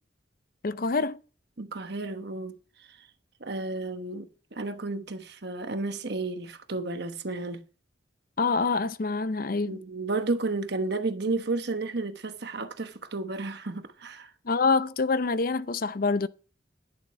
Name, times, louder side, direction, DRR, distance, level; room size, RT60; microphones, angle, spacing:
voice 1, 0.6-1.2 8.4-9.8 14.4-16.3, left 4 dB, 50° left, 0.6 m, -26 dB
voice 2, 1.6-2.6 2.9-3.0 3.4-7.6 9.7-14.3, right 3 dB, 60° right, 1.1 m, -32 dB
10.5 x 7.3 x 5.6 m
head